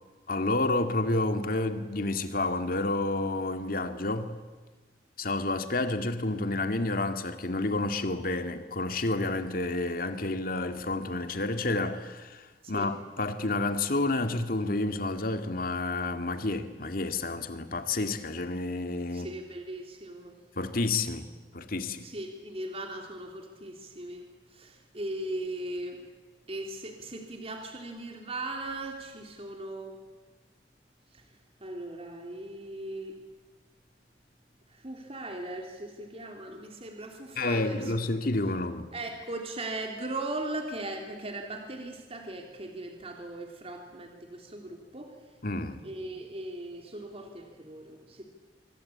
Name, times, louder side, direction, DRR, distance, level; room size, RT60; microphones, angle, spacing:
voice 1, 0.3-4.3 5.2-19.3 20.6-21.3 21.5-22.1 37.4-38.9 45.4-45.8, left 2 dB, 55° left, 2.2 m, -30 dB
voice 2, 19.1-20.4 22.0-26.0 26.5-30.0 31.1-31.2 31.6-33.2 34.7-37.9 38.9-45.2 45.8-48.2, right 2 dB, 35° right, 3.3 m, -38 dB
27.0 x 24.0 x 8.7 m
head